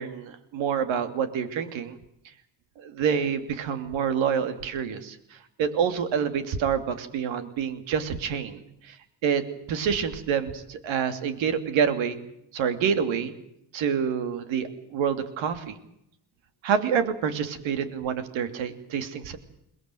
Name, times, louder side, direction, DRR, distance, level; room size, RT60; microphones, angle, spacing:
voice 1, 0.0-1.9 2.8-5.2 5.6-9.0 9.2-9.4 9.7-12.2 12.5-13.3 13.7-15.7 16.6-19.4, right 7 dB, 70° right, 10 dB, 3.0 m, -27 dB
22.0 x 19.5 x 9.3 m, 0.78 s
supercardioid pair, 70°, 48 cm